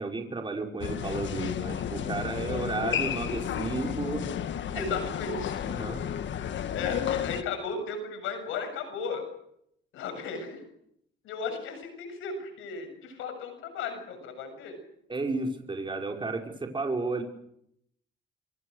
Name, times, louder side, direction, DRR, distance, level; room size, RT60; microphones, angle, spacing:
voice 1, 0.0-4.2 4.7-4.8 5.6-6.0 15.1-17.2, right 3 dB, 25° right, 2 dB, 5.3 m, -32 dB
sound 1, 0.8-7.4, left 9 dB, 65° left, 1.8 m, -32 dB
voice 2, 4.7-5.7 6.4-9.2 9.9-10.6 11.2-14.8, left 5 dB, 90° left, 7 dB, 7.2 m, -35 dB
27.5 x 24.0 x 6.6 m, 0.73 s
cardioid pair, 90°, 20 cm